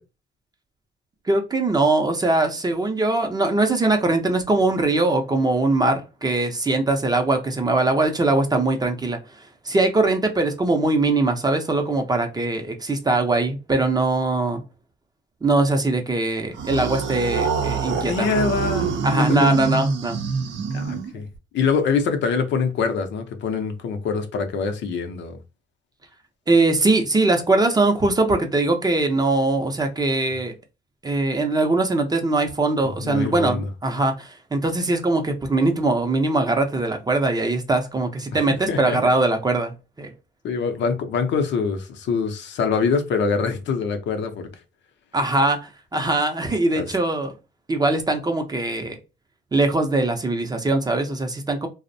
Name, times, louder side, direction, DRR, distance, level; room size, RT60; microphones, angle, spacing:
voice 1, 1.3-14.6 15.4-18.3 19.0-20.2 26.5-30.5 31.0-40.1 45.1-47.3 47.7-49.0 49.5-51.7, right 2 dB, 20° right, 0.5 m, -21 dB
sound 1, 16.5-21.4, right 5 dB, 70° right, 0.5 m, -25 dB
voice 2, 17.8-19.0 20.7-21.3 21.5-25.4 33.0-33.7 38.3-38.4 38.7-39.0 40.4-44.5 46.8-46.9, left 5 dB, 65° left, 0.5 m, -24 dB
2.5 x 2.0 x 2.6 m
cardioid pair, 90°, 20 cm